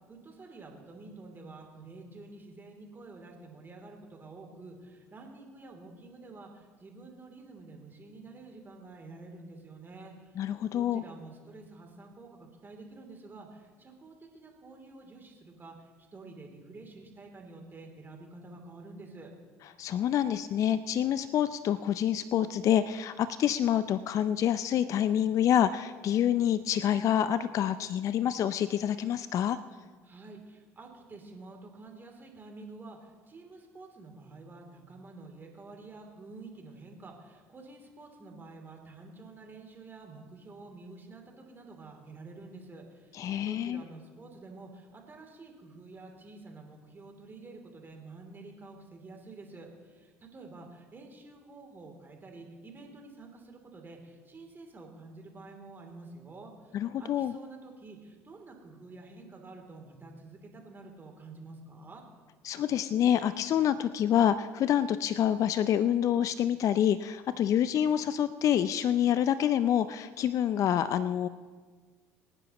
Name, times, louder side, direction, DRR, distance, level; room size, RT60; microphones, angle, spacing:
voice 1, 0.1-10.4 10.7-19.3 30.0-62.0, right 3 dB, 30° right, 2 dB, 3.0 m, -49 dB
voice 2, 10.4-11.0 19.8-29.6 43.1-43.8 56.7-57.3 62.4-71.3, left 10 dB, 50° left, 14 dB, 0.5 m, -27 dB
24.5 x 9.9 x 3.0 m, 1.5 s
hypercardioid pair, 60°, 7 cm